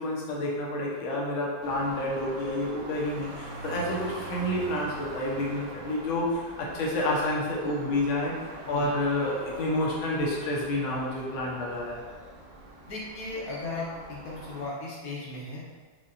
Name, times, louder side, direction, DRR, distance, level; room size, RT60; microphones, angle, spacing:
voice 1, 0.0-12.0, left 1 dB, 85° left, -3 dB, 1.5 m, -29 dB
sound 1, 1.6-14.7, right 2 dB, 75° right, 0.8 m, -43 dB
voice 2, 12.9-15.7, left 2 dB, 60° left, -5 dB, 0.9 m, -36 dB
5.4 x 2.2 x 2.4 m, 1.4 s
omnidirectional pair, 2.2 m